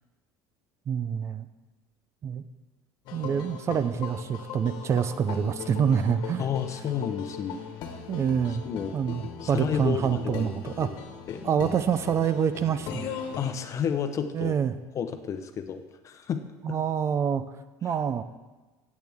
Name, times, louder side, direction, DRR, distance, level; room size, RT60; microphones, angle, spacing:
voice 1, 0.9-1.5 2.2-2.4 3.1-6.5 8.1-8.7 8.9-10.9 11.4-13.1 14.3-14.7 16.6-17.4 17.8-18.2, right 7 dB, 35° right, 12 dB, 0.5 m, -26 dB
sound 1, 3.1-13.5, left 7 dB, 60° left, 1.4 m, -39 dB
voice 2, 6.4-7.6 8.7-9.0 9.4-10.5 11.3-11.4 13.4-14.5 14.9-16.4, left 7 dB, 40° left, 8 dB, 0.9 m, -31 dB
15.5 x 8.4 x 3.6 m, 1.2 s
supercardioid pair, 120°, 8 cm